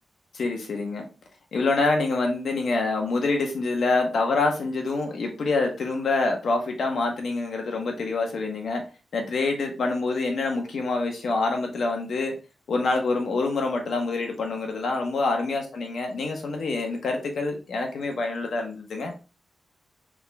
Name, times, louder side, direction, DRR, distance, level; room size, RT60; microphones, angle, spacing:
voice 1, 0.3-1.0 1.5-8.8 9.1-12.3 12.7-19.1, left 3 dB, 60° left, 2 dB, 1.0 m, -26 dB
3.7 x 3.0 x 3.4 m, 0.32 s
wide cardioid pair, 175°, 0 cm